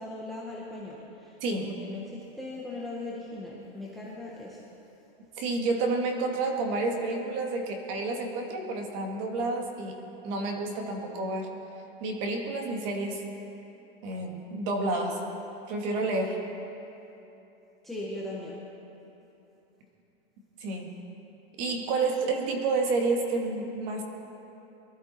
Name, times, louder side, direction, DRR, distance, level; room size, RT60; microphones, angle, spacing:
voice 1, 0.0-4.6 17.8-18.6, left 2 dB, ahead, -5 dB, 0.7 m, -39 dB
voice 2, 5.4-11.5 12.0-13.2 14.0-15.2 15.7-16.4 20.6-20.9 21.6-24.0, right 3 dB, 30° right, 2 dB, 1.7 m, -30 dB
23.0 x 12.5 x 4.1 m, 3.0 s
supercardioid pair, 175°, 31 cm